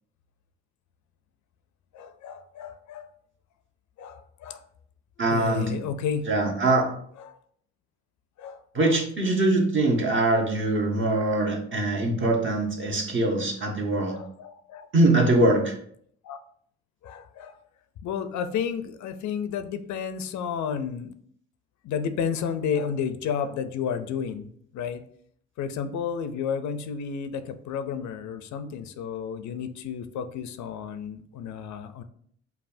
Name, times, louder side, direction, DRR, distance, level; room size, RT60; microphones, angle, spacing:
voice 1, 1.9-3.1 4.0-4.6 5.3-6.5 7.3-7.4 8.4-8.6 14.1-14.9 16.2-16.4 17.0-17.6 18.0-21.1 21.8-25.0 25.6-32.0, left 7 dB, 70° left, 10 dB, 0.5 m, -32 dB
voice 2, 5.2-5.7 6.3-6.9 8.7-14.2 14.9-15.7, right 2 dB, 40° right, 1 dB, 1.0 m, -23 dB
5.3 x 2.3 x 2.6 m, 0.63 s
cardioid pair, 90°, 30 cm